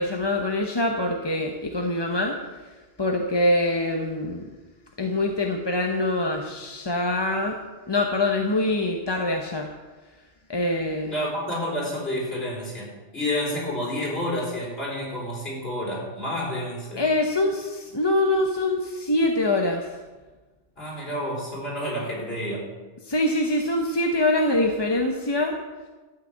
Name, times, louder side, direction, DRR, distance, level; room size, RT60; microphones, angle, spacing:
voice 1, 0.0-2.4 3.0-4.4 5.0-7.6 7.9-9.7 10.5-11.1 17.0-19.9 23.0-25.6, left 1 dB, 25° left, 2 dB, 0.8 m, -24 dB
voice 2, 11.1-17.0 20.8-22.6, left 1 dB, 60° left, -4 dB, 4.5 m, -29 dB
12.5 x 6.3 x 8.7 m, 1.3 s
omnidirectional pair, 1.2 m